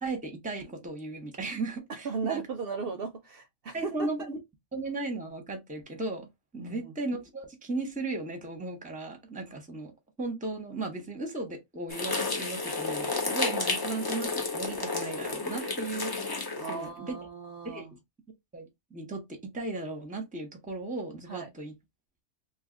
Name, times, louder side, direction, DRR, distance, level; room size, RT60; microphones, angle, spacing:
voice 1, 0.0-2.4 3.7-4.4 4.7-6.3 6.5-9.9 10.2-16.4 16.7-17.2 17.6-18.0 18.5-21.7, right 2 dB, 10° right, 0.7 m, -36 dB
voice 2, 2.0-4.1 6.6-6.9 13.7-13.9 16.6-17.9 21.3-21.5, right 5 dB, 60° right, 0.6 m, -36 dB
sound 1, 11.9-16.9, left 3 dB, 35° left, 0.3 m, -31 dB
2.7 x 2.4 x 3.7 m
omnidirectional pair, 1.2 m